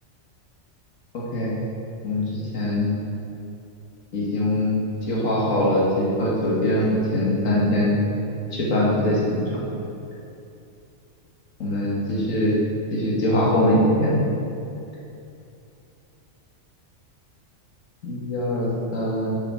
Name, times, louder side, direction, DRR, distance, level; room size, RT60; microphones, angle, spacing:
voice 1, 1.1-1.5 2.0-2.9 4.1-8.0 8.5-9.4 11.6-12.5 12.9-14.2 18.0-19.3, left 1 dB, 75° left, -6 dB, 2.1 m, -22 dB
6.6 x 6.5 x 6.4 m, 2.7 s
omnidirectional pair, 1.4 m